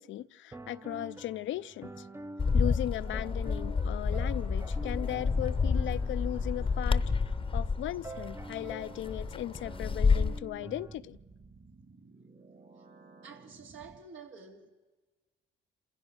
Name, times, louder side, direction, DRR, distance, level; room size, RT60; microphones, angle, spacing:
voice 1, 0.0-2.1 2.5-7.0 7.5-11.2, left 13 dB, 75° left, 0.6 m, -37 dB
sound 1, 0.5-10.9, right 2 dB, 10° right, 0.6 m, -47 dB
Bird, 2.4-10.4, left 5 dB, 25° left, 0.8 m, -29 dB
sound 2, 4.6-14.0, right 3 dB, 50° right, 2.6 m, -55 dB
voice 2, 13.2-14.7, right 5 dB, 80° right, 2.8 m, -49 dB
27.5 x 16.0 x 6.3 m
cardioid pair, 90°, 20 cm